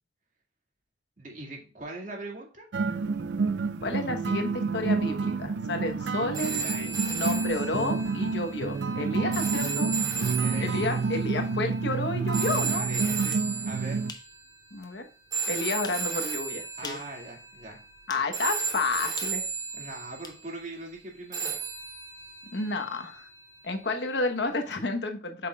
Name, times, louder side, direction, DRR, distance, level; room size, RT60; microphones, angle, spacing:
voice 1, 1.2-2.7 6.4-7.5 10.3-11.0 12.7-13.4 13.6-14.0 16.8-17.8 19.7-21.5, right 2 dB, 40° right, 0 dB, 2.2 m, -41 dB
sound 1, 2.7-14.1, right 4 dB, 70° right, 0.4 m, -29 dB
voice 2, 3.8-6.5 7.1-9.9 10.6-12.9 14.7-15.0 15.5-17.0 18.1-19.4 22.5-23.3 23.6-25.5, left 2 dB, 65° left, 5 dB, 1.1 m, -31 dB
sound 2, 6.3-14.5 15.3-18.0 18.3-20.4 21.3-23.6 24.7-24.8, right 5 dB, 20° right, 2.3 m, -35 dB
sound 3, 13.3-13.5 14.1-14.3 14.8-14.9 15.8-16.1 16.7-17.1 18.1-18.3 19.2-20.4, left 5 dB, 20° left, 0.6 m, -43 dB
8.1 x 5.9 x 2.3 m, 0.38 s
head